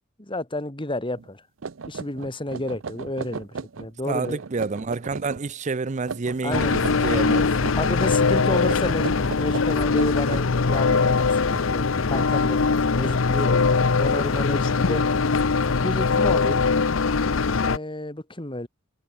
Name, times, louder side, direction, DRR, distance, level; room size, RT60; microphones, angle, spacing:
voice 1, 0.2-1.4 1.9-4.4 6.4-6.8 7.8-15.0 15.8-16.7 17.6-18.7, left 1 dB, 25° left, 3.0 m, -31 dB
sound 1, 1.2-1.3 1.6-3.9 4.2-5.4 6.0-7.9 8.3-11.6, right 5 dB, 75° right, 0.6 m, -36 dB
voice 2, 4.1-7.5, right 4 dB, 35° right, 0.6 m, -28 dB
sound 2, 6.5-17.8, left 4 dB, 85° left, 0.8 m, -21 dB
head